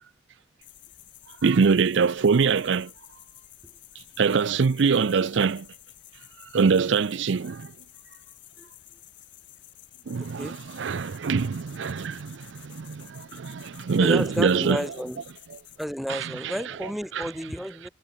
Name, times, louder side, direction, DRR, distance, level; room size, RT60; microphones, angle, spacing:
sound 1, 0.6-15.8, left 14 dB, 70° left, 6.5 m, -51 dB
voice 1, 1.4-2.9 4.2-5.7 6.5-7.7 10.1-14.8 16.1-16.5 17.1-17.3, right 5 dB, 70° right, 0.5 m, -23 dB
voice 2, 14.0-15.2 15.8-17.9, equal, ahead, 1.8 m, -31 dB
head